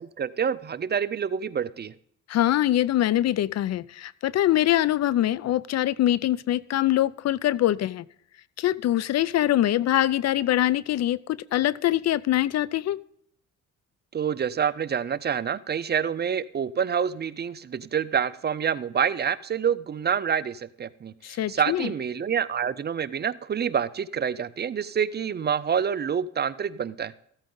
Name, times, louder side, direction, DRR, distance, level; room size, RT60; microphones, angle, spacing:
voice 1, 0.0-1.9 14.1-27.1, right 7 dB, 35° right, 17 dB, 0.5 m, -27 dB
voice 2, 2.3-8.0 8.6-13.0 21.2-21.9, left 13 dB, 60° left, 21 dB, 0.5 m, -23 dB
14.5 x 8.8 x 3.8 m, 0.67 s
cardioid pair, 90°, 30 cm